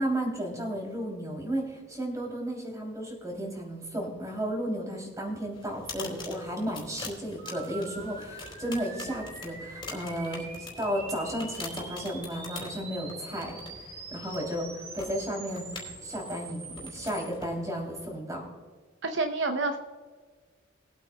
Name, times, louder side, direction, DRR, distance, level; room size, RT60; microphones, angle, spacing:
voice 1, 0.0-13.6 14.1-15.6 16.0-18.4, equal, 15° right, 0 dB, 3.1 m, -33 dB
sound 1, 5.5-18.2, left 3 dB, 25° left, 3.6 m, -45 dB
sound 2, 7.4-17.3, right 4 dB, 50° right, 2.6 m, -44 dB
voice 2, 19.0-19.8, right 3 dB, 65° right, 6 dB, 0.8 m, -28 dB
22.0 x 8.8 x 2.3 m, 1.4 s
head